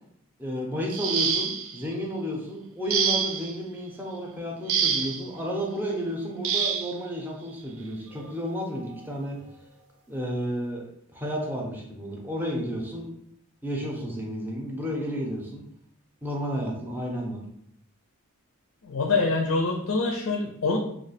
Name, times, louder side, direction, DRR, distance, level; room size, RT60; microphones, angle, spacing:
voice 1, 0.4-9.4 10.1-10.8 11.1-13.1 13.6-15.6 16.2-17.4, equal, 10° right, -1 dB, 0.5 m, -32 dB
sound 1, 0.9-1.8 2.9-3.6 4.7-5.3 6.4-6.9 8.1-8.3 8.8-9.0, right 7 dB, 65° right, 0.4 m, -26 dB
voice 2, 18.8-20.8, left 3 dB, 75° left, 2 dB, 0.5 m, -25 dB
3.0 x 2.1 x 4.1 m, 0.72 s
head